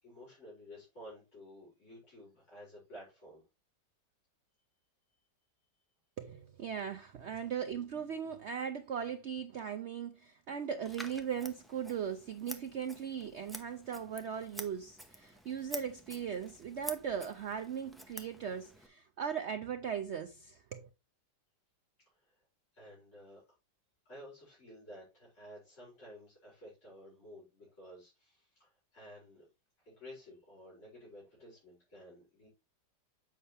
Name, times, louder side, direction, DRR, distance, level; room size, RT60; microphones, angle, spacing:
voice 1, 0.0-3.4 22.1-22.3 22.7-23.4 24.1-29.5 29.8-32.5, equal, 40° left, 5.3 m, -53 dB
voice 2, 6.2-20.9, right 7 dB, 80° right, 0.6 m, -38 dB
Scissors, 10.8-18.9, equal, ahead, 0.5 m, -49 dB
8.0 x 5.6 x 3.3 m
omnidirectional pair, 1.9 m